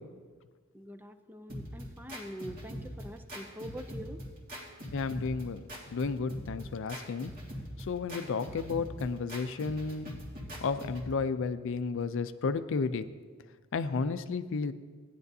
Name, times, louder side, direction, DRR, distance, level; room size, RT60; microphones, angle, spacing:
voice 1, 0.7-4.2, equal, 10° right, 7 dB, 0.4 m, -44 dB
sound 1, 1.5-11.1, equal, 45° right, 1.8 m, -43 dB
voice 2, 4.9-5.6 5.9-7.3 7.9-10.2 10.6-13.0 13.7-14.7, left 4 dB, 65° left, 11 dB, 0.4 m, -32 dB
16.0 x 10.0 x 2.7 m, 1.5 s
head